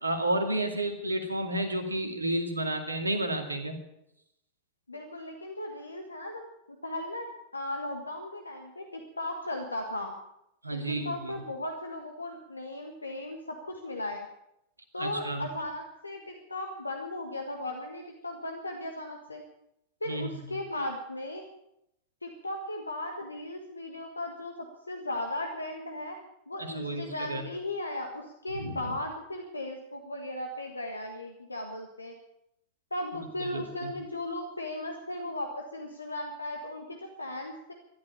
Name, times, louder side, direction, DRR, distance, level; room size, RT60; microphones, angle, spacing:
voice 1, 0.0-3.8 10.6-11.3 15.0-15.4 20.1-20.3 26.7-27.4 28.5-28.9 33.4-33.9, right 1 dB, 80° right, 6 dB, 2.2 m, -31 dB
voice 2, 4.9-6.4 6.8-7.3 7.5-10.1 10.9-14.3 14.9-19.4 20.0-21.4 22.2-26.2 26.5-32.1 32.9-37.7, left 1 dB, 80° left, 3 dB, 1.6 m, -36 dB
13.5 x 12.0 x 8.7 m, 0.82 s
figure-of-eight pair, 90°, 0 cm